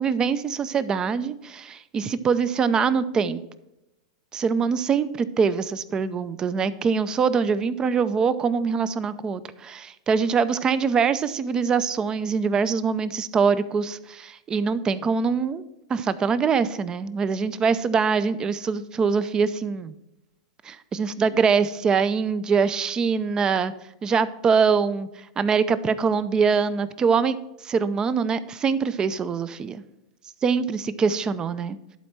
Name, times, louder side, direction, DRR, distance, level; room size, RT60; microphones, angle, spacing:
voice 1, 0.0-3.4 4.3-15.6 15.9-20.0 20.6-23.7 24.0-27.4 27.6-29.8 30.4-32.0, right 5 dB, 25° right, 15 dB, 0.5 m, -23 dB
11.5 x 4.3 x 5.9 m, 0.90 s
hypercardioid pair, 110°, 3 cm